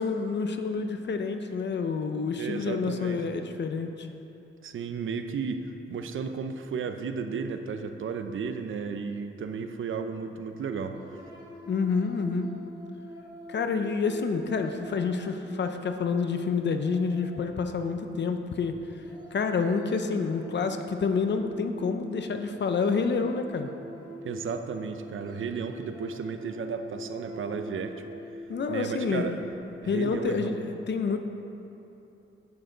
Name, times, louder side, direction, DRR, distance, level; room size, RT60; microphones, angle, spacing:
voice 1, 0.0-4.1 11.7-12.5 13.5-18.8 19.3-23.7 28.5-29.5 29.9-31.2, left 5 dB, 55° left, 7 dB, 0.8 m, -28 dB
voice 2, 2.4-3.2 4.6-11.0 24.2-28.0 28.7-29.4 29.8-30.6, right 5 dB, 70° right, 7 dB, 0.7 m, -33 dB
sound 1, 10.7-30.2, equal, 20° right, 2.1 m, -45 dB
10.5 x 8.7 x 3.9 m, 2.9 s
cardioid pair, 90°, 21 cm